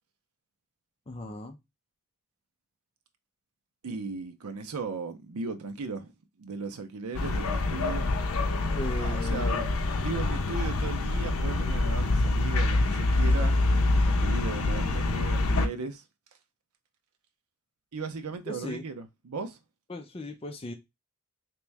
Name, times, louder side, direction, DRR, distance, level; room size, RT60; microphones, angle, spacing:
voice 1, 1.1-1.6 8.7-9.6 18.5-18.9 19.9-20.7, left 1 dB, 25° left, 0.4 m, -37 dB
voice 2, 3.8-6.1 6.4-8.1 9.0-9.6 10.0-13.6 14.0-16.0 17.9-19.6, right 4 dB, 85° right, 0.6 m, -37 dB
sound 1, 7.1-15.7, left 2 dB, 80° left, 0.6 m, -26 dB
3.1 x 3.0 x 3.4 m
head